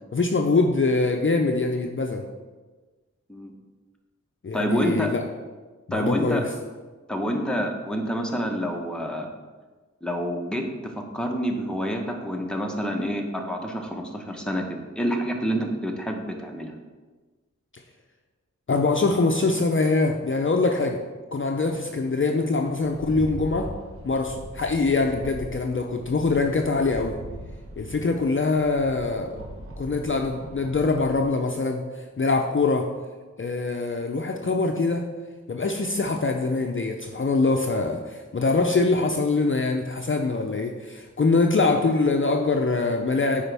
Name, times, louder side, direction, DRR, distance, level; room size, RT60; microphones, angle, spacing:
voice 1, 0.1-2.2 4.4-5.2 5.9-6.4 18.7-21.0 21.3-23.7 24.0-27.2 27.8-29.4 29.8-32.9 33.4-35.0 35.5-43.4, left 3 dB, 45° left, 3 dB, 0.5 m, -23 dB
voice 2, 4.5-5.1 5.9-6.4 7.1-9.3 10.0-16.7, equal, 5° left, 1 dB, 0.9 m, -28 dB
Rattle, 22.8-31.3, equal, 50° right, 1.4 m, -40 dB
8.6 x 5.0 x 3.4 m, 1.3 s
wide cardioid pair, 65°, 30 cm